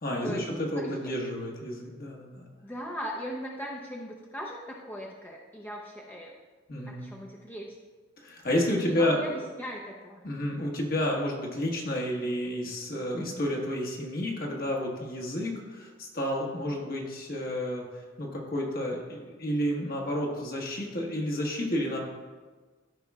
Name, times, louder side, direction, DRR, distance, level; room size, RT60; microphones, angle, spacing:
voice 1, 0.0-2.5 6.7-7.1 8.2-9.4 10.2-22.0, left 1 dB, 50° left, -1 dB, 1.4 m, -31 dB
voice 2, 0.7-1.2 2.6-6.3 6.9-7.7 8.8-9.3 9.6-10.2, equal, 10° left, -3 dB, 0.7 m, -39 dB
13.5 x 5.3 x 2.4 m, 1.4 s
head